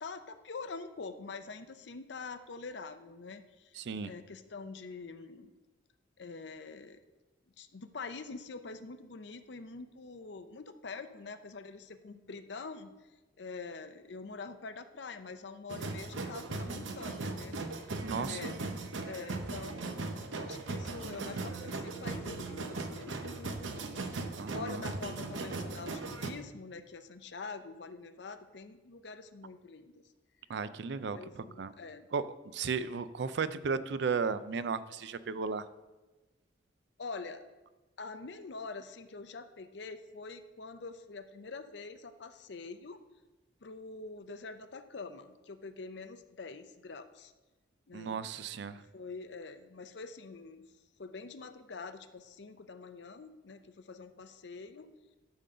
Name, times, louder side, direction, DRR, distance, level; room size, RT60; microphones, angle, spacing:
voice 1, 0.0-5.5 6.2-7.0 7.6-12.9 13.4-18.7 19.1-30.0 31.1-32.1 37.0-37.4 38.0-43.0 43.6-47.3 47.9-48.2 48.9-50.6 51.0-54.9, left 4 dB, 65° left, 10 dB, 0.6 m, -45 dB
voice 2, 3.8-4.1 18.0-18.4 24.4-24.8 30.5-31.7 32.1-32.3 32.5-35.7 47.9-48.8, right 5 dB, 60° right, 14 dB, 0.4 m, -35 dB
sound 1, 15.7-26.3, right 3 dB, 75° right, 0.8 m, -38 dB
11.0 x 3.8 x 6.6 m, 1.1 s
head